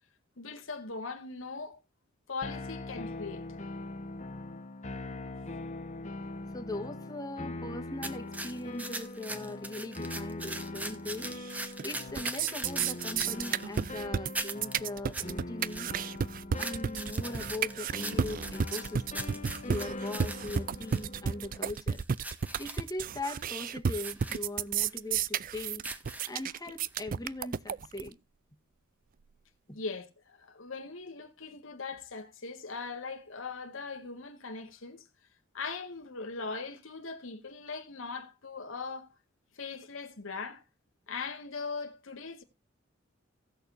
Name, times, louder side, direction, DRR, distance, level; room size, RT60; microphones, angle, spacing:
voice 1, 0.4-1.8 2.3-3.5 29.7-35.1 35.5-39.1 39.5-40.6 41.1-42.4, left 4 dB, 80° left, 1.7 m, -40 dB
sound 1, 2.4-21.7, left 2 dB, 35° left, 1.3 m, -42 dB
voice 2, 6.5-11.3 11.8-15.9 16.5-19.4 19.7-22.0 22.6-25.8 26.2-28.1, left 2 dB, 20° left, 1.5 m, -40 dB
sound 2, 8.0-13.9 14.4-14.8 15.1-15.3 15.6-16.2 16.6-21.1 21.5-22.8 23.2-23.5 24.0-24.4 24.9-25.0 25.7-26.6 27.0-27.1, right 1 dB, 10° right, 1.1 m, -41 dB
Simple beat, 11.4-11.8 12.1-28.1, right 7 dB, 45° right, 0.4 m, -32 dB
17.5 x 6.6 x 2.6 m
head